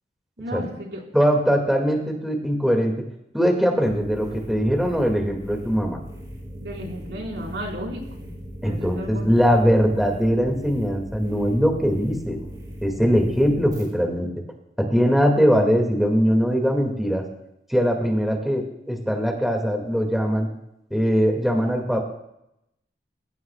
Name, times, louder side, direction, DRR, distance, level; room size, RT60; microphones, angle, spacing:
voice 1, 0.4-1.0 6.6-8.3 8.6-9.4, equal, 75° right, -1 dB, 4.6 m, -34 dB
voice 2, 1.1-2.9 3.3-6.0 8.6-12.4 12.8-14.3 14.8-17.2 17.7-20.5 20.9-22.0, equal, ahead, 1 dB, 2.2 m, -21 dB
sound 1, 3.8-13.9, equal, 25° right, 4.6 m, -38 dB
27.5 x 16.0 x 2.4 m, 0.82 s
head